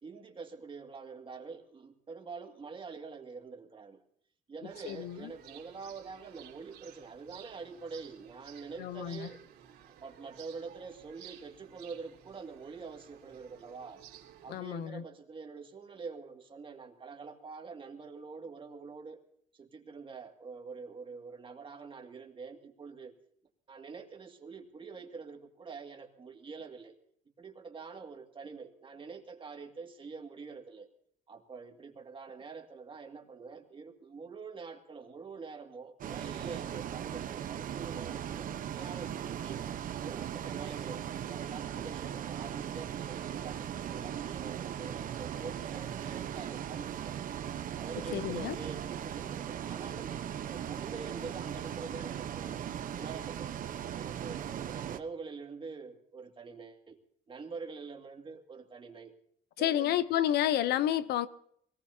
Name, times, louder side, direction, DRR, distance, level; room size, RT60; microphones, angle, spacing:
voice 1, 0.0-4.0 4.5-9.4 9.9-14.0 14.4-19.2 19.5-23.1 23.7-27.0 27.4-30.9 31.3-39.6 40.0-47.3 47.8-50.1 50.4-52.7 52.9-53.6 53.9-57.0 57.3-59.1 59.6-60.0, right 5 dB, 30° right, 2.1 m, -46 dB
sound 1, 4.7-14.6, right 10 dB, 80° right, 3.4 m, -55 dB
voice 2, 4.9-5.3 8.8-9.3 14.5-15.0 48.1-48.6 59.6-61.3, left 11 dB, 75° left, 0.7 m, -30 dB
Bus, 36.0-55.0, right 10 dB, 55° right, 0.9 m, -38 dB
23.5 x 18.5 x 2.8 m
cardioid pair, 110°, 17 cm